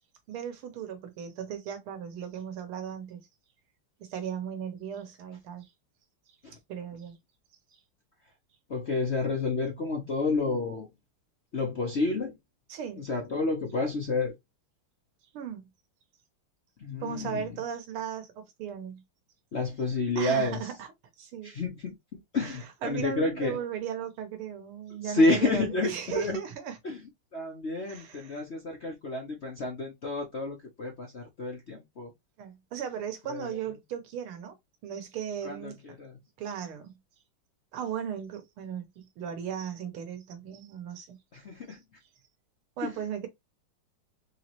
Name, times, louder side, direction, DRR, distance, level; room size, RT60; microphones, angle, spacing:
voice 1, 0.3-3.3 4.0-5.7 6.7-7.2 12.7-13.1 15.3-15.7 17.0-19.0 20.2-20.9 21.2-21.5 22.8-26.8 27.9-28.4 32.4-34.6 34.8-35.8 36.4-37.0 37.7-41.2 42.8-43.3, right 8 dB, 90° right, 1.9 m, -36 dB
voice 2, 8.7-10.9 11.5-12.3 12.9-14.3 16.8-17.6 19.5-20.7 21.4-23.6 25.0-26.4 26.8-32.1 33.3-33.6 35.4-36.2 41.3-41.8 42.8-43.0, left 2 dB, 55° left, 0.7 m, -30 dB
4.6 x 3.1 x 2.9 m
omnidirectional pair, 2.3 m